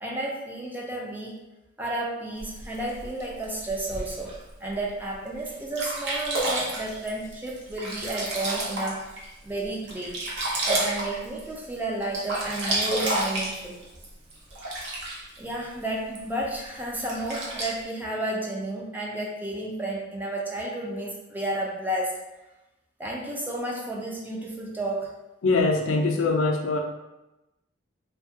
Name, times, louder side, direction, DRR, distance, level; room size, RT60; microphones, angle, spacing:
voice 1, 0.0-1.4 1.8-4.3 4.6-9.2 9.4-10.2 10.7-13.8 15.4-22.2 23.0-25.1, right 1 dB, 10° right, -2 dB, 0.4 m, -32 dB
Sink (filling or washing), 2.4-4.4 5.0-5.1 5.5-5.6 5.7-9.3 9.6-11.7 12.0-15.4 16.1-16.2 16.9-17.8, right 1 dB, 60° right, 0.6 m, -30 dB
voice 2, 25.4-26.8, left 3 dB, 75° left, 3 dB, 0.4 m, -23 dB
2.7 x 2.2 x 2.7 m, 0.97 s
head